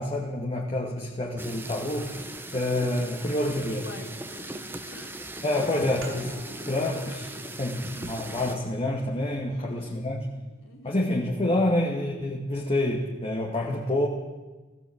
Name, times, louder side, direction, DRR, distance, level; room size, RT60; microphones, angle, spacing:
voice 1, 0.0-2.3 2.5-3.8 5.4-6.3 6.7-7.3 7.6-10.2 10.8-14.1, left 1 dB, 30° left, -1 dB, 2.3 m, -27 dB
sound 1, 1.4-8.5, right 1 dB, 10° right, 1.3 m, -39 dB
voice 2, 3.4-4.6 4.9-5.2 7.4-7.7 9.5-10.0 10.6-11.0, left 1 dB, 70° left, 0 dB, 4.4 m, -46 dB
sound 2, 6.0-11.3, right 1 dB, 80° right, 5.0 m, -50 dB
19.0 x 16.0 x 8.9 m, 1.2 s
head